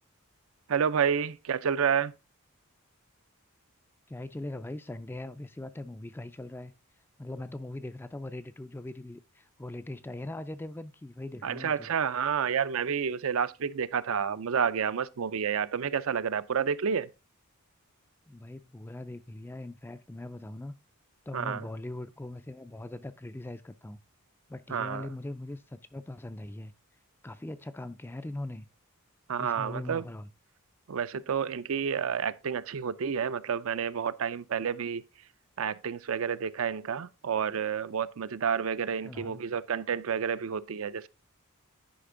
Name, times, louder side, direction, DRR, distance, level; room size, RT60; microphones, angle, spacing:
voice 1, 0.7-2.1 11.4-17.1 21.3-21.7 24.7-25.1 29.3-30.0 30.9-35.0 35.6-41.1, right 7 dB, 65° right, 0.5 m, -30 dB
voice 2, 4.1-6.7 7.2-11.9 18.3-20.7 21.3-24.0 24.5-26.7 27.2-28.7 29.4-30.3 39.0-39.4, left 1 dB, 10° left, 0.3 m, -40 dB
10.0 x 5.2 x 3.7 m
head